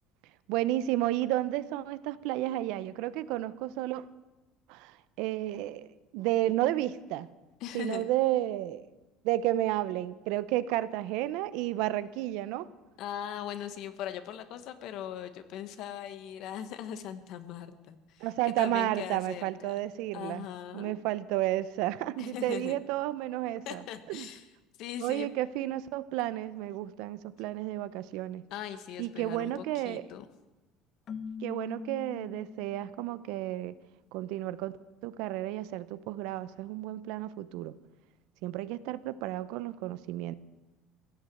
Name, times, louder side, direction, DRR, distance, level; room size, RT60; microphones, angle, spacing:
voice 1, 0.5-4.1 4.7-5.9 6.1-7.3 7.7-8.9 9.2-12.7 18.2-20.5 20.7-23.8 24.1-24.3 25.0-28.4 29.0-30.0 31.4-33.8 34.1-34.8 35.0-37.7 38.4-40.4, right 14 dB, 75° right, 15 dB, 0.7 m, -32 dB
voice 2, 7.6-8.1 13.0-18.3 18.6-19.7 20.1-20.9 22.2-22.8 23.6-24.5 24.8-25.3 28.5-30.2, left 10 dB, 65° left, 10 dB, 1.4 m, -40 dB
Keyboard (musical), 31.1-33.1, left 6 dB, 45° left, 1.0 m, -42 dB
16.0 x 10.5 x 7.8 m, 1.1 s
supercardioid pair, 95°, 0 cm